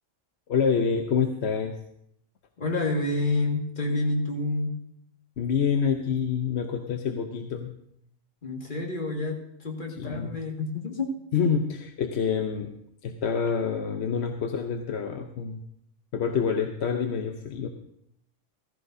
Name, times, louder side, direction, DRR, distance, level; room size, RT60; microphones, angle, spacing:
voice 1, 0.5-1.7 5.4-7.7 10.0-10.3 11.3-12.7 13.0-15.6 16.1-17.7, left 6 dB, 60° left, 4 dB, 1.0 m, -27 dB
voice 2, 2.6-4.7 8.4-11.1, left 2 dB, 40° left, 0 dB, 2.1 m, -28 dB
16.0 x 15.0 x 2.7 m, 0.74 s
omnidirectional pair, 1.3 m